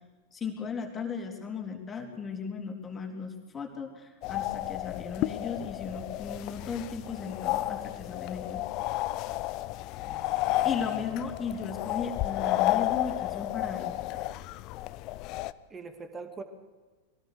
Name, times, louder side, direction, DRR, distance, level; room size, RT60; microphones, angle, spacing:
voice 1, 0.3-8.6 10.6-14.3, left 5 dB, 20° left, 3 dB, 3.6 m, -36 dB
sound 1, 4.2-15.5, left 16 dB, 40° left, 0.7 m, -32 dB
voice 2, 10.0-11.2 15.7-16.4, right 4 dB, 20° right, 8 dB, 2.5 m, -44 dB
23.0 x 18.0 x 6.7 m, 1.3 s
figure-of-eight pair, 90°, 0 cm